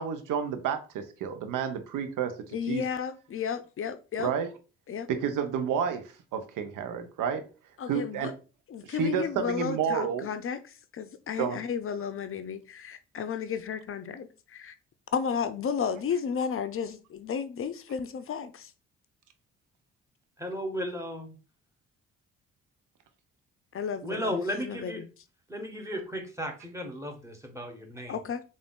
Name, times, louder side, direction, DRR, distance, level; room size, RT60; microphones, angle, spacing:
voice 1, 0.0-2.3 2.7-2.8 4.2-4.5 5.1-6.0 6.3-7.4 7.9-8.3 8.8-10.3 11.4-11.6, right 7 dB, 60° right, 0.8 m, -30 dB
voice 2, 2.5-4.3 4.9-5.1 7.8-8.3 8.7-10.6 10.9-14.7 15.1-18.7 23.7-25.1 28.1-28.4, left 7 dB, 40° left, 0.6 m, -33 dB
voice 3, 20.4-21.4 24.0-25.0 25.5-28.2, equal, 10° right, 1.3 m, -35 dB
3.5 x 2.5 x 3.7 m
hypercardioid pair, 45°, 35 cm